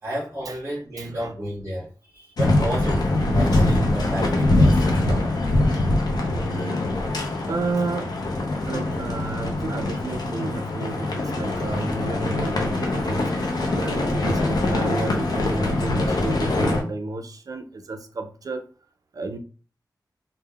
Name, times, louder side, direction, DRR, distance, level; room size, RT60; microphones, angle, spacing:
voice 1, 0.0-5.0, equal, 40° right, -8 dB, 1.1 m, -31 dB
voice 2, 1.0-1.3 3.5-3.8 5.0-5.3 7.5-8.2 8.7-18.7 19.1-19.4, right 2 dB, 55° right, 7 dB, 0.4 m, -31 dB
sound 1, 2.4-16.8, left 2 dB, 65° left, 0.5 m, -23 dB
3.4 x 2.0 x 2.2 m, 0.38 s
wide cardioid pair, 105°, 7 cm